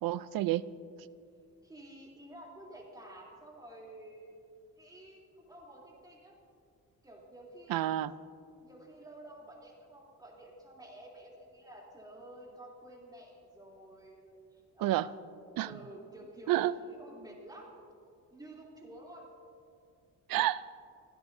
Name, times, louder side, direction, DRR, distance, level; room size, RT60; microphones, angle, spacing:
voice 1, 0.0-0.7 7.7-8.1 14.8-15.1 15.6-15.7 16.5-16.7 20.3-20.7, right 14 dB, 80° right, 17 dB, 0.5 m, -29 dB
voice 2, 1.6-4.4 4.8-6.3 7.0-7.8 8.6-15.3 15.6-17.8 18.3-19.3, right 1 dB, 10° right, -3 dB, 3.2 m, -51 dB
24.5 x 16.5 x 2.7 m, 2.4 s
cardioid pair, 130°, 34 cm